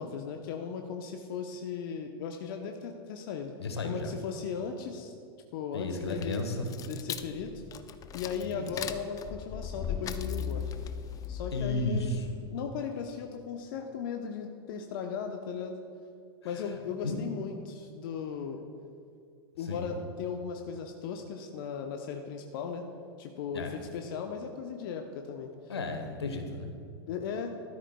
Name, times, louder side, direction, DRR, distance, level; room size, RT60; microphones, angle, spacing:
voice 1, 0.0-3.5 3.8-5.1 5.5-6.4 6.9-7.6 8.1-10.7 11.3-12.1 12.5-15.8 16.4-18.6 19.6-22.9 23.2-25.5 27.1-27.6, left 6 dB, 55° left, 4 dB, 0.8 m, -37 dB
voice 2, 3.6-4.1 5.7-6.7 8.4-8.7 11.5-12.3 16.5-16.8 17.0-17.2 19.6-19.9 23.5-23.8 25.7-26.7, left 2 dB, 80° left, 5 dB, 1.3 m, -34 dB
sound 1, 6.0-12.5, left 7 dB, 25° left, 0.5 m, -38 dB
15.0 x 12.5 x 2.3 m, 2.3 s
figure-of-eight pair, 95°, 13 cm